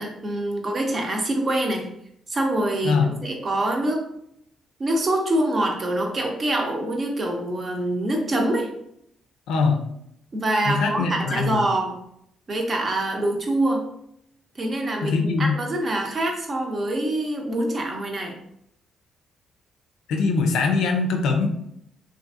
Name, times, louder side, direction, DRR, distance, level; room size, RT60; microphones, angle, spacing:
voice 1, 0.0-1.9 2.3-4.0 4.8-8.7 10.3-12.0 12.5-13.8 14.6-18.3, right 1 dB, 40° right, 2 dB, 0.6 m, -25 dB
voice 2, 9.5-9.8 10.7-11.6 15.0-15.5 20.1-21.5, left 4 dB, 85° left, 4 dB, 0.4 m, -22 dB
2.8 x 2.5 x 2.4 m, 0.74 s
cardioid pair, 90°, 0 cm